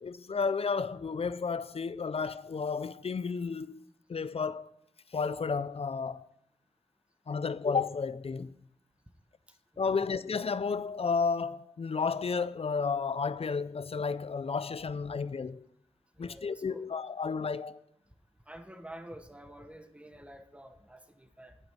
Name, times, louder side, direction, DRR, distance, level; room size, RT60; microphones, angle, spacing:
voice 1, 0.0-3.8 4.1-4.7 5.1-6.3 7.3-8.5 9.8-15.7 16.2-17.8, left 5 dB, 55° left, 0.5 m, -32 dB
voice 2, 9.7-10.1 16.2-16.9 18.5-21.6, right 1 dB, 10° right, 1.2 m, -49 dB
11.0 x 5.2 x 7.3 m
cardioid pair, 45°, 12 cm